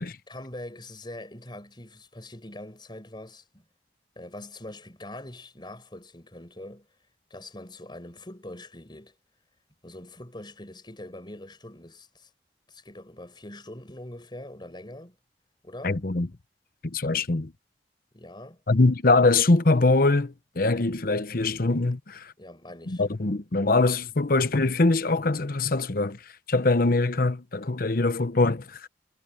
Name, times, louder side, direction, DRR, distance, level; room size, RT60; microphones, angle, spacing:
voice 1, 0.3-3.6 4.1-6.9 7.3-9.2 9.8-12.3 12.7-15.2 15.6-16.1 18.1-18.6 22.4-23.0, left 1 dB, 25° left, 4.8 m, -43 dB
voice 2, 15.8-16.3 16.8-17.5 18.7-22.3 22.9-28.9, left 3 dB, 55° left, 0.9 m, -23 dB
head